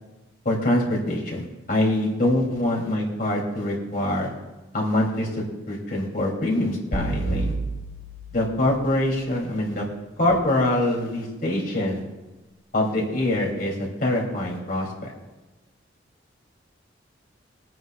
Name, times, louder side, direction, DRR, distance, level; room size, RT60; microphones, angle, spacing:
voice 1, 0.4-4.3 4.7-7.5 8.3-9.8 10.2-12.0 12.7-13.7 14.0-15.1, left 1 dB, 45° left, -2 dB, 3.0 m, -24 dB
sound 1, 6.9-9.2, right 2 dB, 10° left, 2.7 m, -30 dB
23.0 x 9.2 x 2.4 m, 1.1 s
head